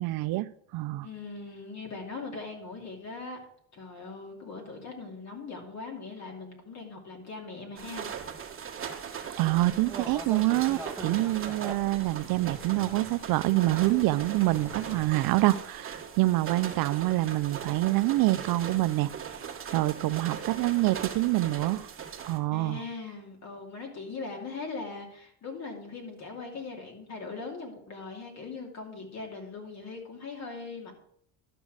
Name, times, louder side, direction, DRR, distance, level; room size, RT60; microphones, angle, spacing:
voice 1, 0.0-1.1 9.4-19.5 19.7-21.9 22.3-22.8, right 18 dB, 60° right, 0.5 m, -26 dB
voice 2, 1.0-3.4 3.7-8.1 22.5-30.9, left 4 dB, 40° left, 2.7 m, -40 dB
sound 1, 7.8-22.4, right 7 dB, 30° right, 1.7 m, -40 dB
sound 2, 9.7-15.1, right 2 dB, 5° right, 1.0 m, -43 dB
12.0 x 6.1 x 4.8 m
cardioid pair, 120°, 41 cm